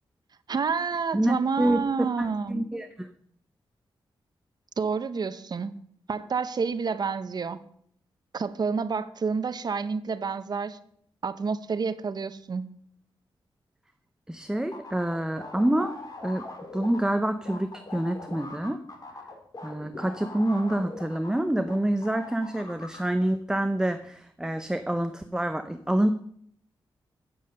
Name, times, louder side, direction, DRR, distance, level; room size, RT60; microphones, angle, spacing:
voice 1, 0.5-2.7 4.8-5.7 6.1-7.6 8.3-10.8 11.2-12.7, right 5 dB, 50° right, 13 dB, 0.7 m, -29 dB
voice 2, 1.1-3.1 14.3-15.9 16.2-16.5 16.7-18.8 19.6-26.1, right 1 dB, 5° right, 8 dB, 0.6 m, -27 dB
sound 1, 14.7-21.8 22.0-23.0, left 2 dB, 45° left, 2.4 m, -41 dB
8.5 x 7.3 x 6.6 m, 0.65 s
wide cardioid pair, 100°, 9 cm